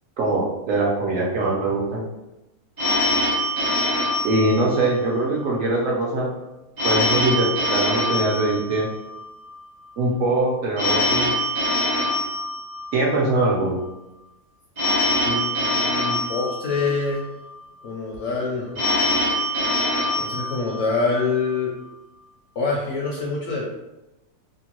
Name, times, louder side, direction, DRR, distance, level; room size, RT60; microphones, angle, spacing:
voice 1, 0.2-2.0 4.2-6.3 6.8-8.9 10.0-11.3 12.9-13.8, right 2 dB, 65° right, -3 dB, 0.9 m, -22 dB
Telephone, 2.8-5.3 6.8-9.3 10.8-13.3 14.8-17.2 18.8-21.2, left 1 dB, 25° right, 0.5 m, -24 dB
voice 2, 15.2-17.2 17.8-18.9 19.2-19.5 20.2-21.7 22.6-23.7, left 4 dB, 65° left, -2 dB, 0.7 m, -26 dB
2.9 x 2.2 x 2.9 m, 0.95 s
omnidirectional pair, 1.6 m